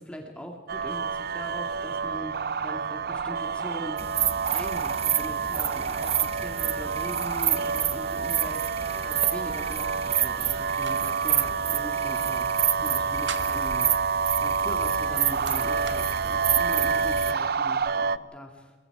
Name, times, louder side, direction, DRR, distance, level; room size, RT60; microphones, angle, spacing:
voice 1, 0.0-4.1 4.5-12.5 12.7-14.1 14.4-18.7, equal, 5° left, 2 dB, 2.2 m, -41 dB
sound 1, 0.7-18.2, right 5 dB, 55° right, 0.6 m, -28 dB
sound 2, 4.0-17.3, right 9 dB, 35° right, 1.0 m, -29 dB
sound 3, 10.5-11.0 11.3-11.4 12.9-13.7 14.9-16.0, right 7 dB, 75° right, 1.7 m, -41 dB
28.5 x 22.5 x 4.9 m, 1.3 s
head